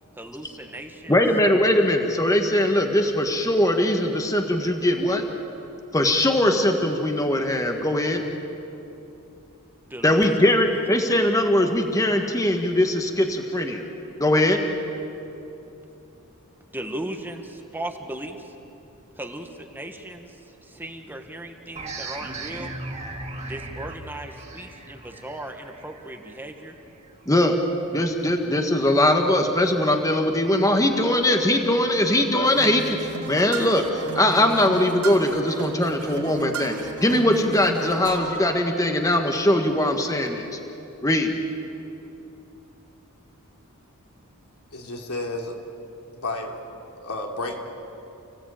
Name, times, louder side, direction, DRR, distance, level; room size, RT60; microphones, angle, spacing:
voice 1, 0.2-1.2 9.9-10.4 16.7-18.5 19.2-20.3 20.6-22.7 23.5-26.7, right 1 dB, 10° right, 4 dB, 1.6 m, -37 dB
voice 2, 1.1-5.3 5.9-8.2 10.0-13.8 14.2-14.6 27.2-27.6 27.9-36.8 37.0-40.6 41.0-41.3, left 1 dB, 15° left, 4 dB, 1.6 m, -21 dB
sound 1, 21.7-27.1, right 2 dB, 30° right, 2.4 m, -37 dB
sound 2, 32.4-38.4, right 3 dB, 75° right, 4.1 m, -34 dB
voice 3, 44.7-45.6 46.1-46.6 47.0-47.5, left 2 dB, 75° left, 1 dB, 3.4 m, -31 dB
30.0 x 17.0 x 9.0 m, 2.9 s
head